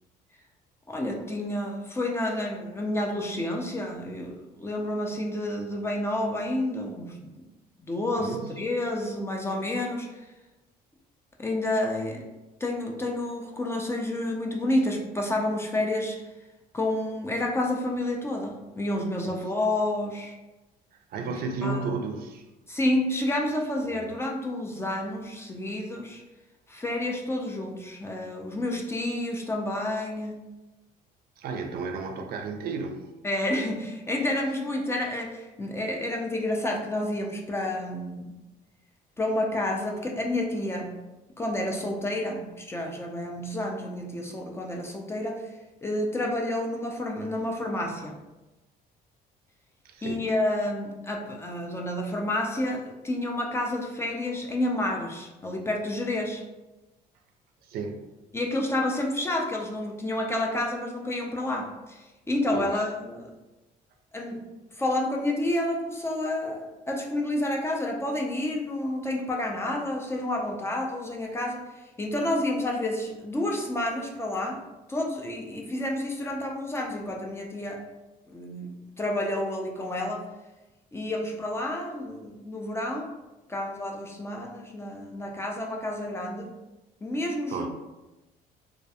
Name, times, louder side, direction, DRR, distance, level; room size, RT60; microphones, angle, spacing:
voice 1, 0.9-7.3 7.9-10.3 11.4-12.2 12.6-16.2 16.7-20.3 21.2-21.3 21.6-21.9 22.7-26.2 26.7-30.4 33.2-38.3 39.2-41.0 41.4-45.5 45.8-48.2 50.0-56.4 58.3-63.3 64.1-64.5 64.7-74.6 74.9-77.8 78.3-80.2 80.9-83.1 83.5-86.5 87.0-87.7, left 1 dB, 15° left, 0 dB, 0.3 m, -29 dB
voice 2, 8.2-8.6 19.2-19.4 20.9-22.4 23.9-24.1 31.4-33.1 49.8-50.2 57.6-58.1 62.5-62.7 87.5-87.7, right 4 dB, 65° right, 4 dB, 0.4 m, -33 dB
2.3 x 2.2 x 2.7 m, 1.0 s
cardioid pair, 110°, 17 cm